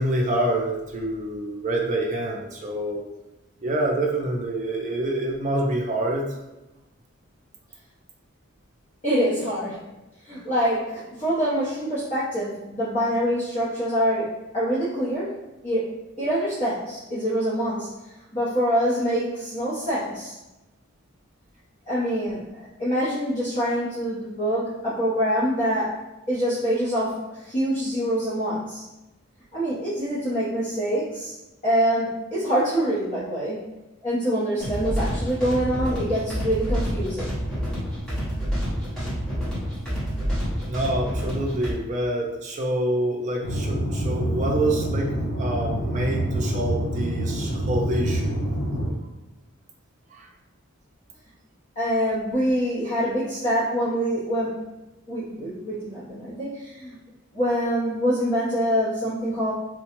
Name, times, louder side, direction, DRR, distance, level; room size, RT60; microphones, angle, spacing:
voice 1, 0.0-3.0 3.6-6.2 40.7-48.4 50.1-50.3, right 1 dB, 35° right, 0 dB, 0.5 m, -26 dB
voice 2, 9.0-9.8 10.2-15.4 15.6-17.9 18.3-20.3 21.9-26.0 26.3-28.8 29.5-31.3 31.6-33.6 34.0-37.3 51.7-54.6 55.1-57.0 57.3-59.5, equal, 35° left, -12 dB, 1.0 m, -25 dB
sound 1, 34.6-41.7, equal, 5° left, 0.9 m, -28 dB
sound 2, 43.4-48.9, right 1 dB, 60° left, 0.8 m, -26 dB
3.8 x 2.3 x 3.0 m, 1.0 s
head